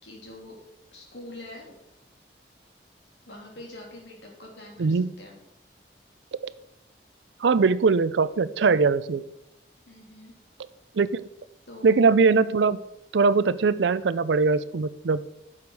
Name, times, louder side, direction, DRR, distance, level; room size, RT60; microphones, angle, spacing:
voice 1, 0.0-0.6 0.9-1.7 3.3-5.3 9.8-10.4 11.7-12.1, left 1 dB, 85° left, -1 dB, 3.1 m, -44 dB
voice 2, 4.8-5.1 7.4-9.2 11.0-11.2 11.8-12.8 13.1-15.2, right 4 dB, 85° right, 16 dB, 0.5 m, -21 dB
10.5 x 7.2 x 4.8 m, 0.85 s
head